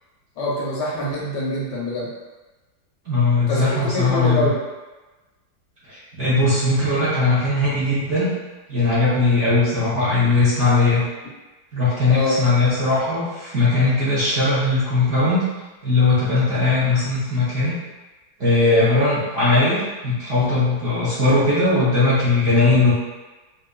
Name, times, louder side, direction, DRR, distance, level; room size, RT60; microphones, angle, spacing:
voice 1, 0.4-2.1 3.5-3.7 3.9-4.6 12.1-12.4, left 1 dB, 70° left, -5 dB, 1.3 m, -24 dB
voice 2, 3.1-4.5 5.9-8.3 8.7-11.0 11.7-15.4 15.8-17.8 18.4-22.9, left 2 dB, 50° right, -11 dB, 1.0 m, -19 dB
3.6 x 2.7 x 2.2 m, 1.2 s
omnidirectional pair, 2.1 m